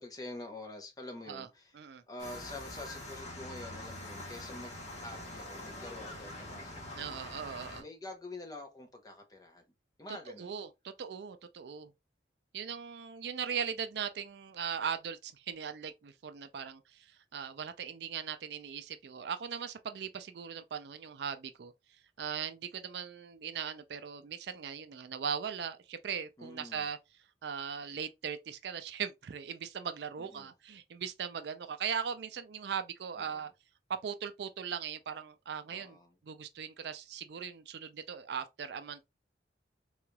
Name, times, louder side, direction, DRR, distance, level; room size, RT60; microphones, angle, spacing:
voice 1, 0.0-7.1 7.8-9.6 10.0-10.5 26.4-26.9 30.2-30.5 33.3-33.5 35.7-36.2, left 2 dB, 20° left, 0.7 m, -47 dB
sound 1, 2.2-7.8, left 1 dB, 40° left, 1.2 m, -44 dB
voice 2, 6.9-7.8 10.4-10.7 11.0-11.9 12.5-17.1 17.3-21.7 22.2-27.0 27.4-33.5 34.0-36.0 36.2-39.0, right 7 dB, 65° right, 0.4 m, -39 dB
3.9 x 3.1 x 2.2 m
head